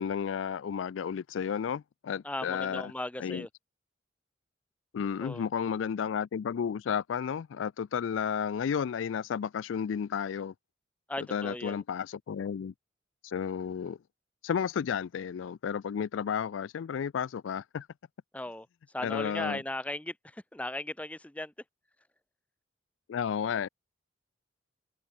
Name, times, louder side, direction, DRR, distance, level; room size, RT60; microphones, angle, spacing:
voice 1, 0.0-2.9 3.2-3.5 4.9-10.5 11.2-12.7 13.2-14.0 14.4-17.9 19.0-19.6 23.1-23.7, left 7 dB, 75° left, 0.4 m, -32 dB
voice 2, 2.2-3.5 5.2-5.5 11.1-11.8 18.3-18.7 18.9-21.5, left 1 dB, 5° left, 0.6 m, -37 dB
head